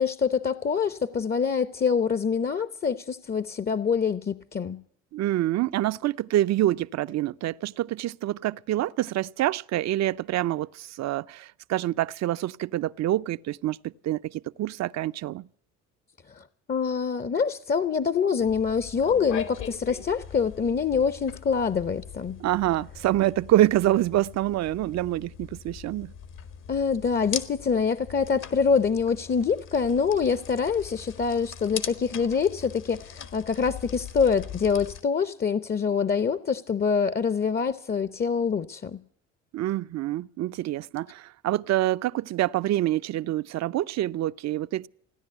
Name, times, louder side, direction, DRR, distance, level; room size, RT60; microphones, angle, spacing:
voice 1, 0.0-4.8 16.3-22.4 26.7-39.0, left 6 dB, 30° left, 0.7 m, -25 dB
voice 2, 5.1-15.5 22.4-26.1 39.5-44.9, right 14 dB, 50° right, 0.6 m, -26 dB
sound 1, 18.4-35.0, left 9 dB, 70° left, 1.8 m, -41 dB
17.0 x 10.5 x 8.0 m
supercardioid pair, 70°, 34 cm